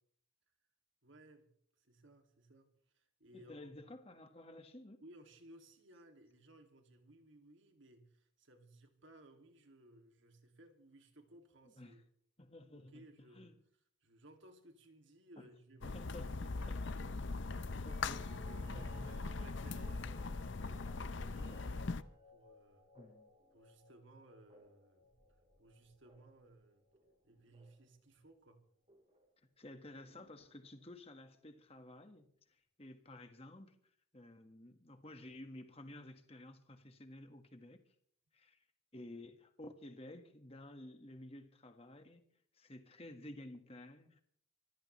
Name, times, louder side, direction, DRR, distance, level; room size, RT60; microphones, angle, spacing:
voice 1, 1.0-1.5 1.8-3.8 5.0-12.1 12.7-13.5 14.0-22.9 23.5-26.9 27.2-28.7, right 1 dB, 60° right, 2.5 m, -61 dB
voice 2, 3.3-5.0 11.7-12.0 12.4-13.0 13.3-13.5 15.4-15.5 15.8-16.3 16.7-16.8 17.8-18.3 18.7-19.1 22.9-23.3 29.6-32.3 32.8-33.7 34.1-37.8 38.3-38.6 38.9-42.2 42.5-44.2, left 1 dB, 30° left, 1.6 m, -53 dB
sound 1, 15.8-22.0, left 3 dB, 60° left, 0.6 m, -41 dB
sound 2, 17.8-27.9 28.9-29.3 30.0-31.0 32.8-32.9, equal, 30° right, 3.8 m, -62 dB
25.0 x 15.5 x 3.2 m
head